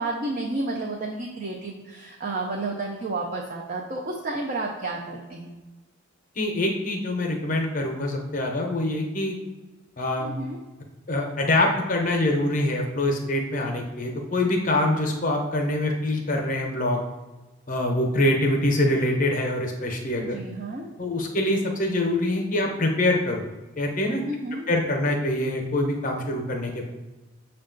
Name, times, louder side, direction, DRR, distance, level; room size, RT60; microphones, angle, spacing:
voice 1, 0.0-5.5 10.2-10.6 20.2-20.9 24.3-24.7, right 2 dB, 40° right, -1 dB, 0.4 m, -31 dB
voice 2, 6.4-9.3 10.0-10.3 11.1-17.0 17.7-20.4 21.0-23.4 23.8-24.2 24.7-26.9, left 1 dB, 40° left, 2 dB, 0.6 m, -24 dB
6.3 x 2.3 x 3.8 m, 1.1 s
head